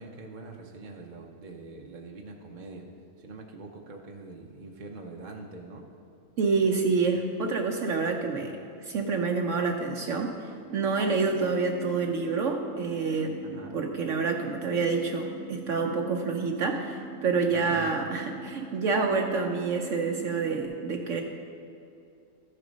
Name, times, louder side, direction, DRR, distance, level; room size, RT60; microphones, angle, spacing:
voice 1, 0.0-2.9 3.2-5.9 13.4-13.8 17.5-17.9, right 3 dB, 45° right, 0 dB, 0.7 m, -44 dB
voice 2, 6.4-13.4 13.7-21.2, right 4 dB, 65° right, 3 dB, 1.0 m, -28 dB
sound 1, 10.7-20.7, right 3 dB, 85° right, 1.2 m, -43 dB
13.0 x 6.6 x 5.2 m, 2.6 s
omnidirectional pair, 1.5 m